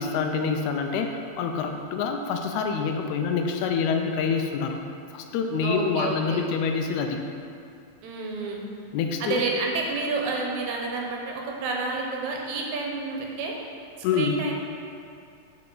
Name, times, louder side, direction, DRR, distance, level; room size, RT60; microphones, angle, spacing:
voice 1, 0.0-4.8 5.1-7.2 8.9-9.4 14.0-14.4, left 5 dB, 80° left, 4 dB, 1.8 m, -26 dB
voice 2, 5.6-6.4 8.0-8.6 9.2-13.6 14.1-14.5, right 3 dB, 75° right, 0 dB, 2.1 m, -29 dB
5.5 x 5.2 x 5.3 m, 2.5 s
omnidirectional pair, 3.4 m